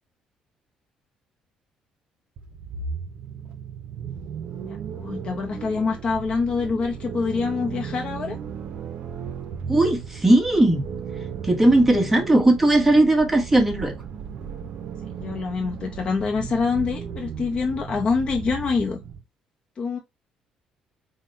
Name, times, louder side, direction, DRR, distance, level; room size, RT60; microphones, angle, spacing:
sound 1, 2.4-19.2, right 7 dB, 65° right, 0.6 m, -35 dB
voice 1, 4.6-8.4 15.2-19.0 19.8-20.0, left 4 dB, 45° left, 0.6 m, -26 dB
voice 2, 9.7-10.8 11.4-13.9, right 1 dB, 10° right, 1.0 m, -18 dB
3.8 x 2.1 x 4.2 m
cardioid pair, 100°, 2 cm